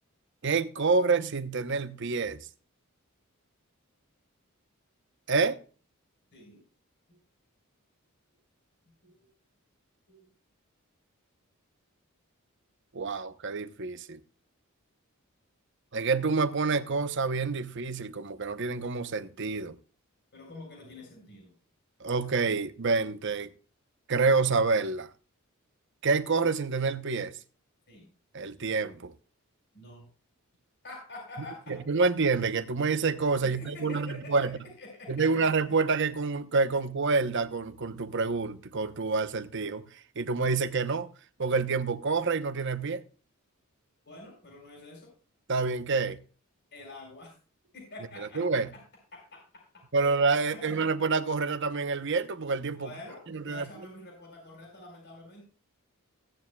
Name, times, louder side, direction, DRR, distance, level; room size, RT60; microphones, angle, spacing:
voice 1, 0.4-2.4 5.3-5.6 12.9-14.2 15.9-19.8 22.0-23.5 24.1-25.1 26.0-27.3 28.3-29.1 31.7-34.6 35.1-39.9 40.2-41.1 41.4-43.0 45.5-46.2 48.2-48.7 49.9-52.9 53.3-53.6, right 4 dB, 55° right, 0.9 m, -27 dB
voice 2, 6.3-6.6 7.1-7.2 9.0-9.1 10.1-10.3 20.3-21.5 27.9-28.1 29.7-30.1 30.8-31.9 33.4-34.5 34.8-35.4 44.0-45.1 46.7-47.3 47.7-48.8 49.1-50.8 52.7-55.4, left 2 dB, 55° left, 4.9 m, -47 dB
16.0 x 9.8 x 2.3 m
head